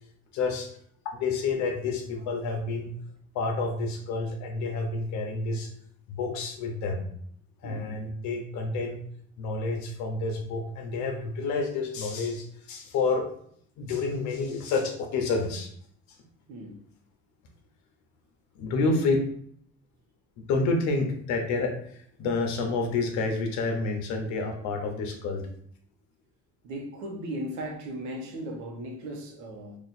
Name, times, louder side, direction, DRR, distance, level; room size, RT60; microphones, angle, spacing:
voice 1, 0.3-0.7 1.0-2.9 3.3-5.7 6.1-7.1 7.6-9.0 9.4-13.3 13.8-15.7 18.5-19.2 20.5-25.4, left 3 dB, 75° left, 3 dB, 0.8 m, -29 dB
voice 2, 7.6-8.0 16.5-16.8 18.8-19.0 26.6-29.8, right 1 dB, 75° right, 2 dB, 0.9 m, -37 dB
2.9 x 2.4 x 4.1 m, 0.63 s
cardioid pair, 165°, 29 cm